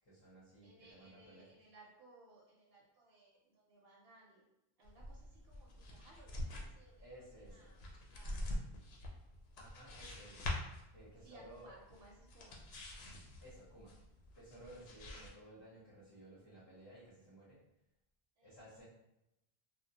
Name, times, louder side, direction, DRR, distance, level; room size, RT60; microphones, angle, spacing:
voice 1, 0.0-1.5 7.0-7.7 9.6-10.5 10.9-11.7 13.4-14.0 14.3-17.6 18.4-18.9, right 1 dB, 30° left, -9 dB, 0.7 m, -57 dB
voice 2, 0.6-4.5 4.8-7.0 7.5-7.8 8.1-8.6 11.2-12.6 18.4-18.5, right 2 dB, 75° right, -3 dB, 0.8 m, -62 dB
sound 1, 4.8-15.3, left 1 dB, 75° left, 0.8 m, -46 dB
2.3 x 2.1 x 2.7 m, 0.87 s
omnidirectional pair, 1.1 m